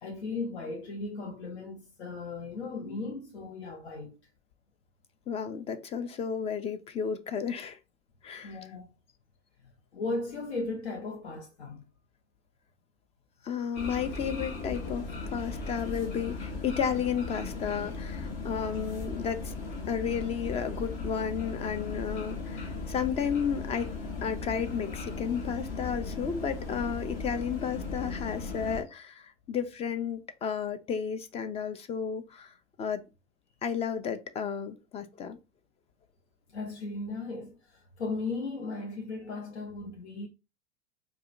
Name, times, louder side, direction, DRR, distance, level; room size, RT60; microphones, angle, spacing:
voice 1, 0.0-4.2 8.4-8.9 9.6-11.8 36.5-40.3, left 3 dB, 85° left, 0.8 m, -36 dB
voice 2, 5.3-7.8 8.2-8.6 13.4-19.5 19.9-23.9 24.2-33.0 33.6-35.4, left 7 dB, 20° left, 0.4 m, -33 dB
sound 1, 13.8-28.8, left 3 dB, 45° left, 1.3 m, -37 dB
4.8 x 2.3 x 2.5 m
hypercardioid pair, 100°, 33 cm